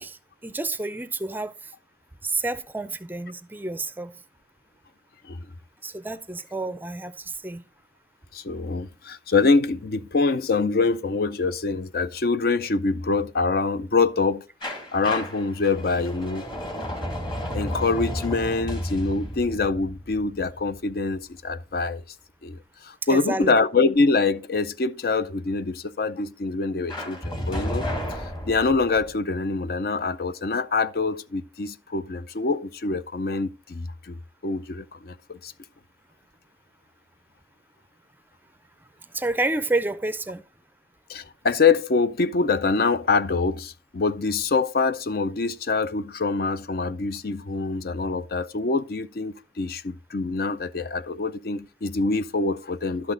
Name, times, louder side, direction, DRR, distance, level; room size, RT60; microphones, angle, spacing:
voice 1, 0.0-1.5 2.2-4.1 5.8-7.6 23.1-23.6 39.1-40.4, right 2 dB, 10° right, 0.4 m, -29 dB
voice 2, 8.3-14.4 14.9-16.4 17.5-22.0 22.4-22.6 22.8-27.9 28.5-34.2 34.4-35.5 41.1-53.1, left 4 dB, 55° left, 0.5 m, -25 dB
sound 1, 14.6-21.4 26.9-29.1, equal, 25° left, 2.1 m, -32 dB
11.5 x 6.1 x 3.8 m
head